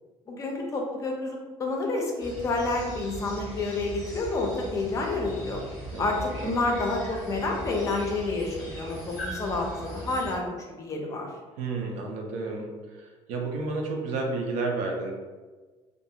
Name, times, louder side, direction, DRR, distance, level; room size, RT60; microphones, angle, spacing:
voice 1, 0.3-5.6 6.0-11.3, left 3 dB, 30° left, 1 dB, 0.4 m, -29 dB
sound 1, 2.2-10.4, right 1 dB, 5° left, 0.8 m, -39 dB
voice 2, 11.6-12.7 13.0-15.2, right 3 dB, 80° right, 1 dB, 0.5 m, -31 dB
2.5 x 2.3 x 2.7 m, 1.4 s
cardioid pair, 160°, 11 cm